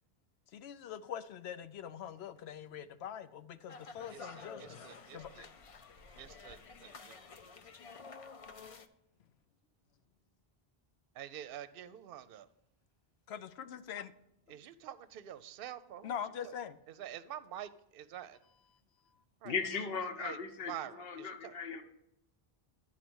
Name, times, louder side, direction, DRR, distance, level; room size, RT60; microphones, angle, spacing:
voice 1, 0.5-5.5 13.3-14.1 14.5-14.6 16.0-16.8, left 8 dB, 90° left, 12 dB, 0.9 m, -43 dB
sound 1, 3.7-8.9, left 4 dB, 40° left, 0.5 m, -51 dB
voice 2, 4.1-5.5 6.2-7.2 11.1-12.5 14.5-16.5 16.9-18.4 19.4-19.6 20.2-20.4 20.7-21.5, right 11 dB, 65° right, 14 dB, 0.7 m, -47 dB
voice 3, 19.4-21.8, left 5 dB, 70° left, 6 dB, 1.1 m, -38 dB
11.5 x 4.2 x 6.2 m, 0.83 s
omnidirectional pair, 1.0 m